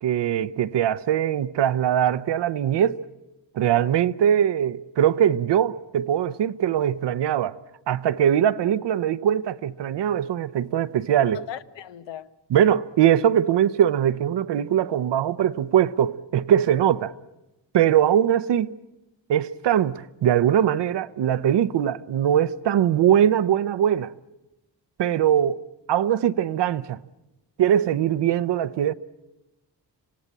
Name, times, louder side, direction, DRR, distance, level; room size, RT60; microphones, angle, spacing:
voice 1, 0.0-3.0 3.5-7.6 7.9-11.5 12.5-17.1 17.7-18.7 19.3-24.1 25.0-25.6 25.9-27.0 27.6-28.9, right 10 dB, 70° right, 0.9 m, -21 dB
voice 2, 11.3-12.3, left 11 dB, 80° left, 1.1 m, -37 dB
26.5 x 17.5 x 8.8 m
wide cardioid pair, 150°, 44 cm